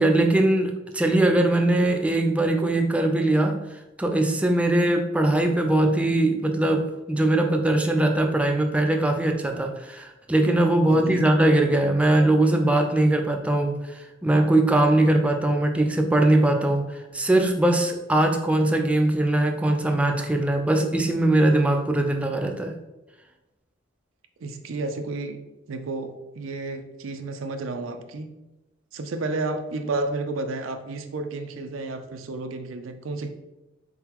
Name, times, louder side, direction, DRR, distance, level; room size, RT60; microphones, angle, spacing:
voice 1, 0.0-3.6 4.0-22.7, right 1 dB, 5° right, 3 dB, 0.3 m, -21 dB
voice 2, 10.9-11.3 24.4-25.4 25.7-28.3 28.9-33.3, right 3 dB, 85° right, 7 dB, 0.5 m, -31 dB
3.9 x 3.7 x 2.9 m, 1.0 s
head